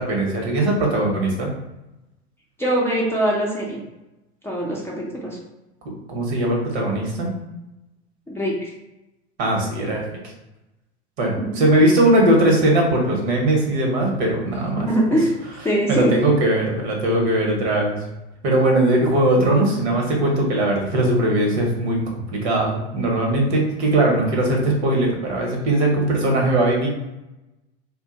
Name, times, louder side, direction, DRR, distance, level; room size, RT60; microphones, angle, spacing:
voice 1, 0.0-1.5 6.1-7.3 9.4-10.0 11.2-15.2 15.9-18.0 18.4-26.9, right 1 dB, 65° right, 0 dB, 1.0 m, -20 dB
voice 2, 2.6-3.8 4.4-5.4 8.3-8.7 11.4-11.7 14.8-15.3 15.6-16.1, right 1 dB, 5° left, -5 dB, 0.5 m, -22 dB
2.5 x 2.2 x 3.7 m, 0.96 s
hypercardioid pair, 95°, 34 cm